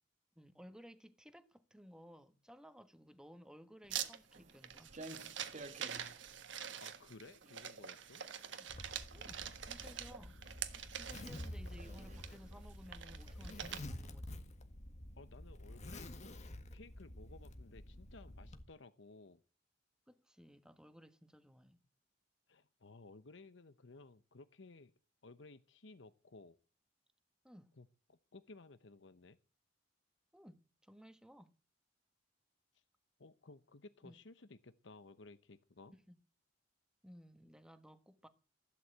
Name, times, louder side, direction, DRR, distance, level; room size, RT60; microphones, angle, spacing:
voice 1, 0.3-5.0 8.6-8.7 9.1-10.4 10.9-14.5 20.1-21.8 27.4-27.7 30.3-31.5 34.0-34.2 36.1-36.2 37.0-38.3, equal, 5° right, 1.3 m, -58 dB
Walk footsteps, 3.8-13.3, right 2 dB, 40° right, 1.5 m, -57 dB
sound 1, 3.9-13.8, right 9 dB, 70° right, 1.4 m, -45 dB
voice 2, 6.8-8.3 15.2-16.1 16.7-19.4 22.5-24.9 25.2-26.6 27.8-29.4 33.2-35.9, left 3 dB, 70° left, 0.9 m, -57 dB
Zipper (clothing), 8.7-18.6, left 1 dB, 40° left, 1.6 m, -49 dB
15.5 x 11.5 x 8.0 m
head